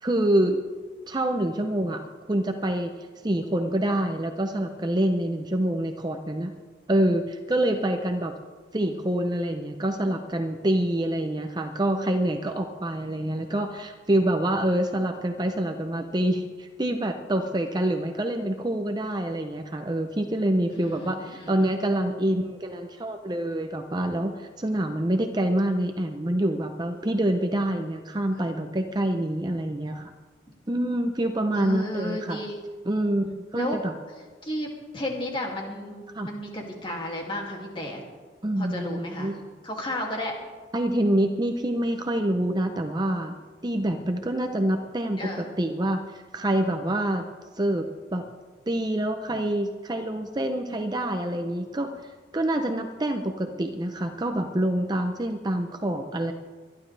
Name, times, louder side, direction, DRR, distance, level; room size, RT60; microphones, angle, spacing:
voice 1, 0.0-0.6 1.1-2.0 2.3-2.9 3.2-6.5 6.9-8.3 8.7-30.1 30.7-32.4 32.9-33.9 36.1-36.3 38.4-39.4 40.7-43.4 43.6-45.2 45.6-47.3 47.5-47.8 48.1-48.2 48.7-56.3, right 1 dB, 25° right, 5 dB, 0.7 m, -26 dB
voice 2, 20.7-21.7 28.3-28.7 30.5-30.6 31.5-32.6 33.5-33.8 34.4-38.0 38.6-39.3 39.6-40.3 45.2-45.5, left 1 dB, 25° left, -1 dB, 2.5 m, -33 dB
24.0 x 11.5 x 3.4 m, 1.4 s
head